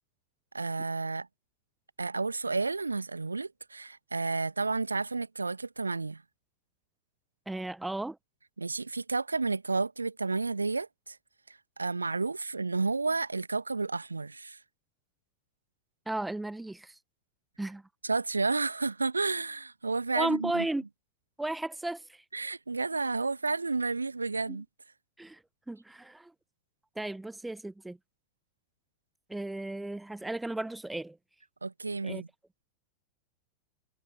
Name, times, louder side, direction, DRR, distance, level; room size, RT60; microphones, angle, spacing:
voice 1, 0.5-1.3 2.0-6.2 8.6-11.2 11.8-14.6 18.0-20.6 22.3-24.6 31.6-32.3, right 3 dB, 80° right, 1.4 m, -31 dB
voice 2, 7.5-8.2 16.1-17.0 17.6-17.8 20.1-20.8 21.4-22.2 24.5-24.6 25.2-25.4 25.7-26.3 27.0-28.0 29.3-31.2 32.0-32.2, right 2 dB, 5° right, 0.7 m, -34 dB
figure-of-eight pair, 90°, 0 cm